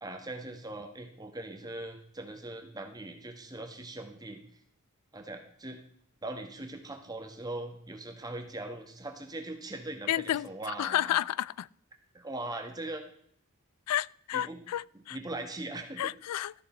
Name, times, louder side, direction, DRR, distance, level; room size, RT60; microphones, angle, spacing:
voice 1, 0.0-4.4 5.1-5.8 6.2-11.2 12.1-13.0 14.3-14.6 15.1-16.1, right 2 dB, 15° right, 1.3 m, -40 dB
voice 2, 10.1-10.5 10.8-11.7 13.9-15.2 16.0-16.5, left 12 dB, 90° left, 0.3 m, -31 dB
13.5 x 6.5 x 4.4 m
head